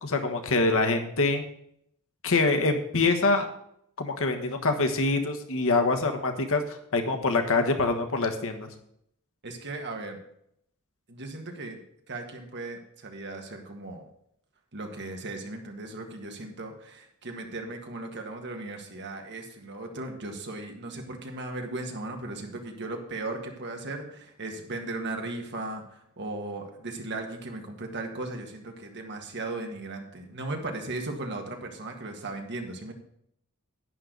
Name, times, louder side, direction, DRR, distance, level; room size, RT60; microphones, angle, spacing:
voice 1, 0.0-1.4 2.2-3.5 4.0-8.7, left 3 dB, 65° left, 5 dB, 1.4 m, -25 dB
voice 2, 9.4-10.2 11.1-11.8 12.1-14.1 14.7-32.9, right 2 dB, 55° right, 3 dB, 1.8 m, -37 dB
11.0 x 9.8 x 4.0 m, 0.72 s
head